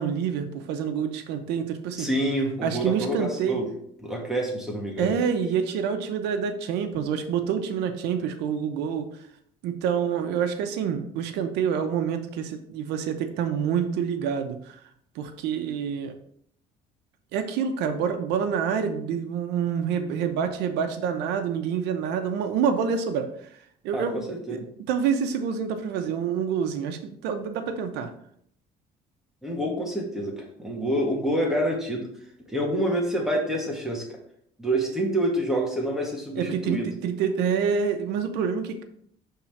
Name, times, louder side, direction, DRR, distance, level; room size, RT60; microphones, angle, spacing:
voice 1, 0.0-2.1 2.6-3.6 5.0-9.1 9.6-14.8 15.2-16.1 17.3-23.3 23.8-28.1 36.3-38.8, right 7 dB, 90° right, 7 dB, 0.9 m, -27 dB
voice 2, 2.0-3.7 4.0-5.2 23.9-24.7 29.4-32.1 32.5-34.2 34.6-36.9, right 1 dB, 5° right, -1 dB, 1.8 m, -27 dB
5.7 x 3.7 x 5.9 m, 0.67 s
cardioid pair, 110°, 17 cm